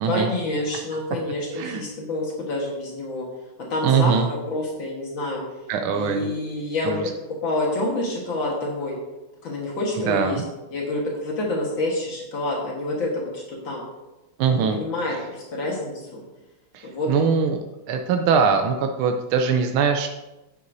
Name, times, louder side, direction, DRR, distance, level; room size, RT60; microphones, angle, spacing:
voice 1, 0.1-3.3 3.7-5.4 5.9-7.0 7.4-8.9 9.4-10.4 10.7-13.8 14.5-16.2 16.8-17.1, left 2 dB, 65° left, -2 dB, 2.2 m, -27 dB
voice 2, 3.8-4.3 5.7-6.3 6.8-7.1 10.1-10.4 14.4-14.8 16.7-17.6 17.9-20.1, right 6 dB, 85° right, 5 dB, 1.5 m, -22 dB
9.5 x 9.5 x 2.7 m, 1.0 s
omnidirectional pair, 2.3 m